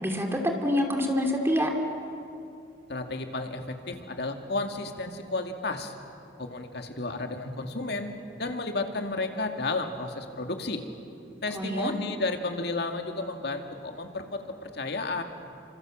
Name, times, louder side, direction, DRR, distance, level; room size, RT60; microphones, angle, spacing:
voice 1, 0.0-1.7 11.5-11.9, equal, 15° right, 3 dB, 2.9 m, -26 dB
voice 2, 2.9-5.9 6.4-8.1 8.4-10.9 11.4-15.2, left 3 dB, 65° left, 5 dB, 2.2 m, -32 dB
28.0 x 26.0 x 7.5 m, 2.6 s
head